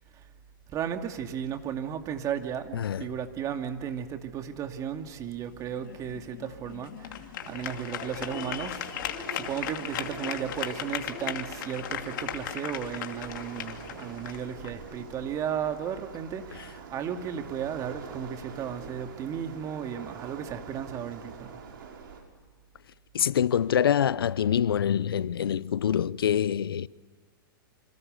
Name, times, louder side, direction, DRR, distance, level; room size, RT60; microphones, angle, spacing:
voice 1, 0.7-8.9 9.3-21.6, right 8 dB, 30° right, 2.5 m, -35 dB
voice 2, 2.7-3.1 23.1-26.9, left 9 dB, 85° left, 0.8 m, -25 dB
sound 1, 5.4-15.5, left 11 dB, 60° left, 2.6 m, -38 dB
Waves surf, 7.4-22.2, right 6 dB, 70° right, 6.4 m, -46 dB
sound 2, 8.1-8.7 9.0-9.5 9.9-10.5 11.0-11.5 11.9-12.3 12.7-13.2, left 1 dB, 5° left, 7.9 m, -45 dB
28.5 x 27.0 x 6.7 m
hypercardioid pair, 135°, 12 cm